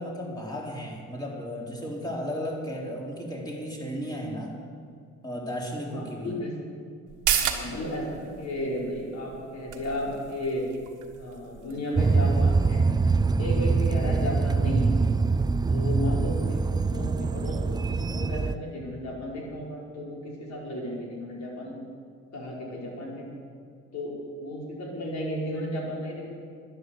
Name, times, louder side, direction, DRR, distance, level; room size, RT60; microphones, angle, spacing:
voice 1, 0.0-4.5 5.2-6.3, equal, 15° left, -3 dB, 3.9 m, -34 dB
voice 2, 5.9-6.6 7.4-10.6 11.2-12.9 13.4-14.9 15.7-21.8 22.3-23.3 23.9-26.3, left 1 dB, 60° left, -3 dB, 4.6 m, -34 dB
sound 1, 7.1-14.2 14.5-14.6, right 9 dB, 90° right, 1.4 m, -34 dB
sound 2, 12.0-18.6, right 4 dB, 15° right, 0.3 m, -24 dB
11.5 x 11.0 x 7.8 m, 2.2 s
cardioid pair, 90°, 30 cm